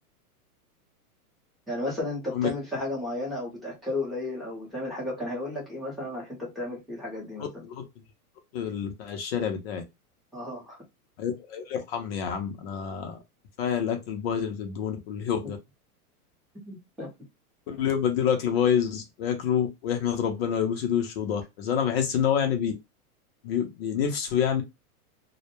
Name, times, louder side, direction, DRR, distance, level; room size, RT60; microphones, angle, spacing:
voice 1, 1.7-7.6 10.3-10.8 16.7-17.1, left 2 dB, ahead, 0.6 m, -33 dB
voice 2, 8.5-9.8 11.2-13.2 13.6-15.6 17.7-22.7 23.4-24.6, left 8 dB, 45° left, 0.5 m, -27 dB
2.1 x 2.1 x 2.9 m
hypercardioid pair, 145°, 45 cm